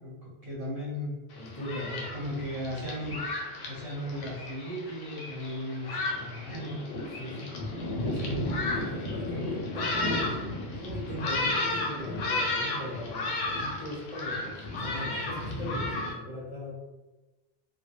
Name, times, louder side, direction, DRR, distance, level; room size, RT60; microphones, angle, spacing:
voice 1, 0.0-1.2 2.1-3.2 3.7-6.8, equal, 45° right, -7 dB, 0.7 m, -36 dB
Thunderstorm, 1.3-16.1, left 2 dB, 85° left, 0.8 m, -33 dB
voice 2, 1.3-2.1 7.2-7.5 8.0-8.3 8.7-10.4 10.7-13.3 13.6-16.7, left 1 dB, 35° left, -8 dB, 0.6 m, -39 dB
2.2 x 2.0 x 2.9 m, 1.1 s
omnidirectional pair, 1.0 m